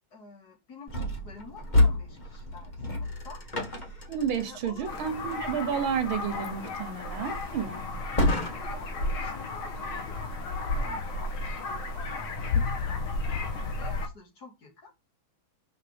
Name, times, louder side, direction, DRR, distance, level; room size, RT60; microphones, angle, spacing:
voice 1, 0.1-3.4 4.4-5.0 8.3-11.3 11.9-12.6 12.8-14.9, left 3 dB, 50° left, 2.5 m, -49 dB
sound 1, 0.9-8.9, left 1 dB, 25° left, 1.1 m, -30 dB
voice 2, 4.1-7.9 13.5-13.6, right 7 dB, 80° right, 1.9 m, -31 dB
sound 2, 4.9-14.1, left 3 dB, 85° left, 2.2 m, -33 dB
5.8 x 5.7 x 3.4 m
omnidirectional pair, 2.2 m